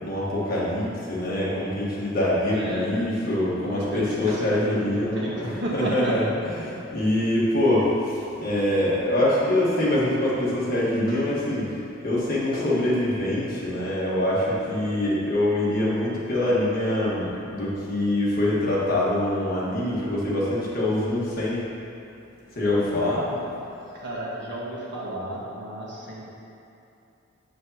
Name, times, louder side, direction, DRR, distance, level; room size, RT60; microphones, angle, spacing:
voice 1, 0.0-6.2 6.6-11.7 12.0-21.6 22.5-23.2, left 1 dB, 50° left, -7 dB, 1.4 m, -24 dB
voice 2, 2.5-2.9 3.5-6.1 23.2-23.4 23.9-26.2, equal, 60° right, -6 dB, 1.4 m, -32 dB
7.1 x 6.3 x 2.8 m, 2.7 s
head